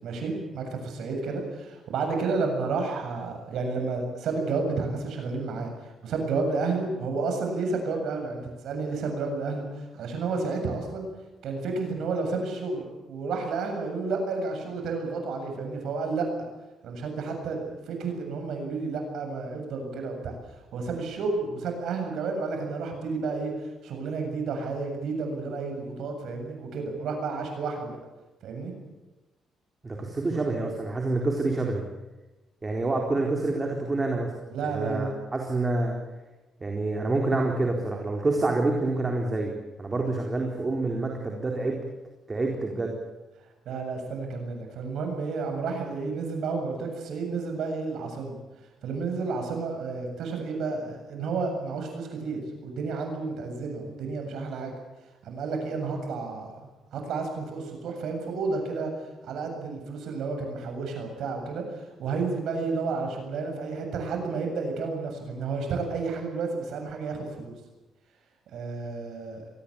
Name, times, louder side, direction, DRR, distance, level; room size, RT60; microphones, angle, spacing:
voice 1, 0.0-11.1 11.4-16.3 16.8-20.3 20.7-28.0 28.4-28.7 34.5-35.1 43.7-48.4 48.8-54.7 55.2-56.5 56.9-58.9 59.2-67.5 68.5-69.4, right 4 dB, 75° right, 4 dB, 7.6 m, -31 dB
voice 2, 29.8-31.8 32.6-34.3 34.6-36.0 36.6-39.5 39.8-41.8 42.3-43.0, right 2 dB, 25° right, 1 dB, 4.1 m, -27 dB
24.0 x 19.0 x 8.8 m, 1.1 s
cardioid pair, 90°, 0 cm